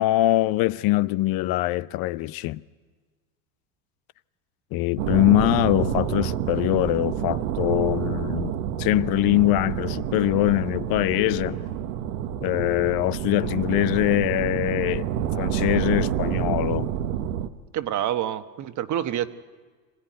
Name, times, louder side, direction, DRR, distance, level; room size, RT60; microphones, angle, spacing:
voice 1, 0.0-2.6 4.7-11.6 12.4-15.1 15.4-16.9, left 18 dB, 55° left, 0.7 m, -23 dB
sound 1, 5.0-17.5, right 10 dB, 80° right, 1.3 m, -28 dB
voice 2, 17.7-19.3, right 11 dB, 40° right, 1.2 m, -27 dB
25.0 x 17.0 x 9.4 m
supercardioid pair, 100°, 43 cm